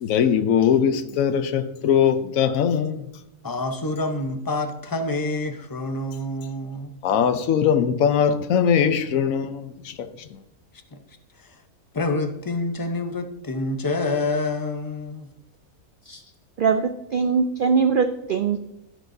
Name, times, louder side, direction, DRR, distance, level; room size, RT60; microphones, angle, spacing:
voice 1, 0.0-3.0 7.0-9.9, left 8 dB, 70° left, 1.0 m, -21 dB
voice 2, 3.4-7.0 10.9-11.0 11.4-11.6 11.9-15.3, left 2 dB, 25° left, 0.5 m, -27 dB
voice 3, 16.6-18.6, right 5 dB, 90° right, 0.4 m, -22 dB
15.0 x 6.2 x 2.7 m
omnidirectional pair, 1.5 m